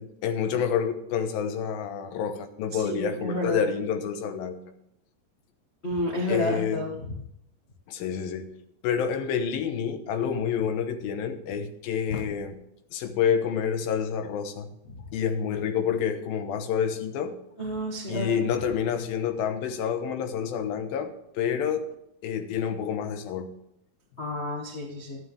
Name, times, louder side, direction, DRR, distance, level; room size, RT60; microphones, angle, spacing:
voice 1, 0.0-4.7 6.3-6.9 7.9-8.5 8.8-12.6 12.9-14.7 15.1-17.4 18.1-21.9 22.2-23.5, left 7 dB, 80° left, 7 dB, 2.8 m, -28 dB
voice 2, 2.7-3.7 5.8-6.9 17.6-18.4 24.2-25.2, equal, 35° left, -2 dB, 1.1 m, -30 dB
12.0 x 11.0 x 3.5 m, 0.78 s
omnidirectional pair, 4.2 m